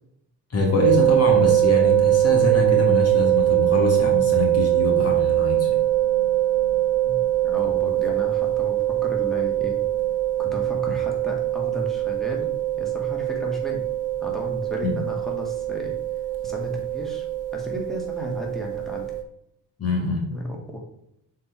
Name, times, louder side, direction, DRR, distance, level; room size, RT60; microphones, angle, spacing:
voice 1, 0.5-5.8 14.8-14.9 19.8-20.3, left 3 dB, 35° left, 1 dB, 1.8 m, -24 dB
sound 1, 0.8-19.2, right 14 dB, 50° right, 1.2 m, -22 dB
voice 2, 7.0-9.8 10.4-12.5 12.8-13.8 14.2-15.9 16.4-19.1 20.3-20.8, equal, ahead, -1 dB, 2.1 m, -34 dB
6.3 x 4.7 x 4.5 m, 0.77 s
cardioid pair, 95°, 42 cm